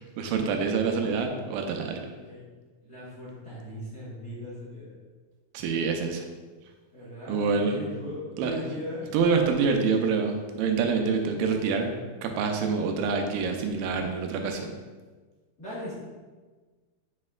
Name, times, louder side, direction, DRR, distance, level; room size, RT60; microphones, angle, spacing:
voice 1, 0.2-2.0 5.5-6.3 7.3-7.8 8.4-8.5 9.1-11.9 12.2-14.7, right 5 dB, 90° right, 3 dB, 2.6 m, -26 dB
voice 2, 2.1-2.4 2.8-4.9 6.9-9.1 15.6-15.9, left 1 dB, 40° left, -10 dB, 1.5 m, -38 dB
7.5 x 6.3 x 2.4 m, 1.4 s
omnidirectional pair, 4.1 m